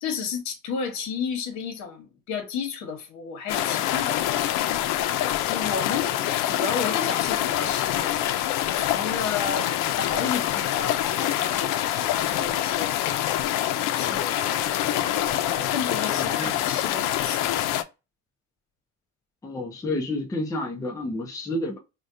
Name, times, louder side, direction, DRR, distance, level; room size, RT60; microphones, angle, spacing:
voice 1, 0.0-4.6 5.4-8.4 8.8-9.7 10.0-13.2 13.5-14.7 15.1-17.5, left 6 dB, 60° left, 1.3 m, -33 dB
sound 1, 3.5-17.8, left 12 dB, 85° left, 0.5 m, -25 dB
voice 2, 16.1-16.8 19.4-21.8, left 1 dB, 10° left, 0.6 m, -30 dB
4.9 x 2.3 x 2.7 m
cardioid pair, 165°, 31 cm